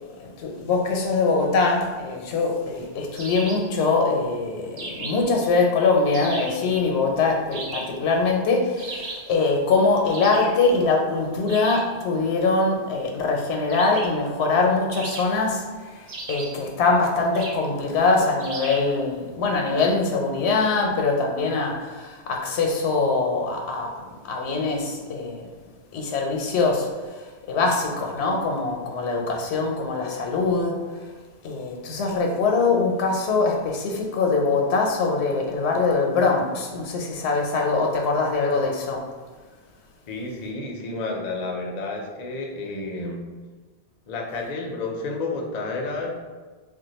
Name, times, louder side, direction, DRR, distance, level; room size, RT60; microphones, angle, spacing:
voice 1, 0.4-24.0 24.2-25.5 25.9-26.9 27.5-30.8 31.4-39.1, left 3 dB, 90° left, 1 dB, 0.9 m, -23 dB
sound 1, 3.2-3.7 4.8-5.4 6.1-6.7 7.5-8.0 8.8-9.3 10.1-10.6 11.5-11.9 13.7-14.2 14.9-15.6 16.1-16.7 17.3-17.7 18.4-18.9, right 2 dB, 55° right, 0.5 m, -36 dB
voice 2, 40.1-43.2 44.1-46.1, left 3 dB, 50° left, 0 dB, 0.5 m, -30 dB
2.5 x 2.2 x 4.0 m, 1.3 s
omnidirectional pair, 1.1 m